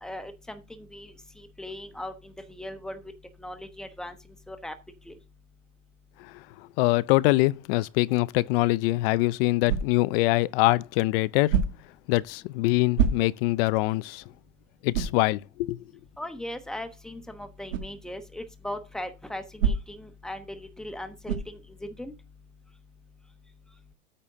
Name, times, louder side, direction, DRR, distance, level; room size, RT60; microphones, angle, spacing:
voice 1, 0.0-3.0 3.4-4.1 4.5-4.7 5.1-5.2 16.2-22.1, left 1 dB, ahead, 1.0 m, -39 dB
voice 2, 6.8-11.6 12.1-14.2 14.8-15.8, left 20 dB, 50° left, 0.5 m, -24 dB
sound 1, 9.6-10.2 11.5-12.0 12.9-13.6 14.1-14.2 14.9-15.3 17.7-17.9 19.6-20.1 21.2-21.6, right 6 dB, 80° right, 1.6 m, -27 dB
8.9 x 4.2 x 6.1 m
supercardioid pair, 130°, 38 cm